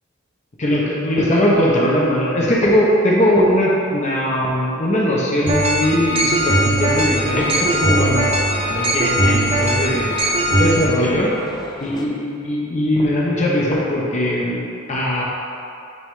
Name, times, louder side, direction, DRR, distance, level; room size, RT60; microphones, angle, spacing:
voice 1, 0.6-8.3 8.5-10.1 10.6-11.3 11.8-15.2, equal, 35° left, -4 dB, 0.8 m, -19 dB
sound 1, 5.5-10.8, right 1 dB, 30° right, 0.6 m, -19 dB
sound 2, 6.8-12.1, left 2 dB, 20° left, 0.4 m, -35 dB
9.2 x 3.5 x 3.2 m, 2.6 s
head